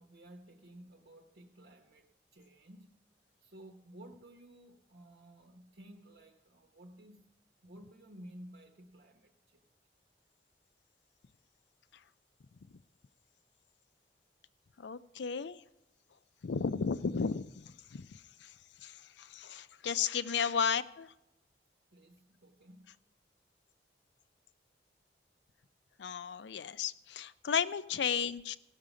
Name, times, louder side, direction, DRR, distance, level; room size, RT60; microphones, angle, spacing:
voice 1, 0.0-3.0 3.4-7.3 7.6-9.7 21.9-23.0, right 1 dB, 75° right, 4 dB, 0.9 m, -54 dB
voice 2, 14.8-15.6 16.4-18.5 18.8-21.1 26.0-28.6, left 6 dB, 85° left, 15 dB, 0.5 m, -34 dB
16.0 x 6.6 x 5.0 m, 0.94 s
head